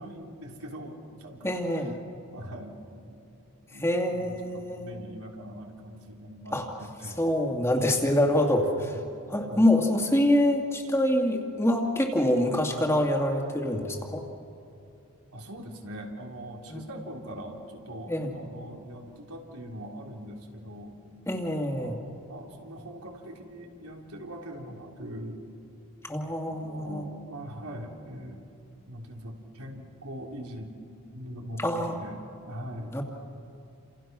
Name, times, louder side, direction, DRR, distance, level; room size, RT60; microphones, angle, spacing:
voice 1, 0.0-1.5 2.3-2.8 3.1-3.2 3.7-7.2 7.7-8.2 8.8-9.0 9.4-9.7 15.3-21.2 21.7-22.0 22.3-25.5 26.5-28.4 28.9-30.7 31.1-33.0, equal, 85° right, 1 dB, 3.6 m, -42 dB
voice 2, 1.4-2.0 3.7-4.9 6.5-6.7 7.2-8.9 9.3-14.2 16.7-16.8 18.1-18.3 21.3-21.9 26.0-27.0 31.6-32.0 32.9-33.0, left 1 dB, 10° left, 2 dB, 2.2 m, -25 dB
30.0 x 27.5 x 6.1 m, 2.7 s
head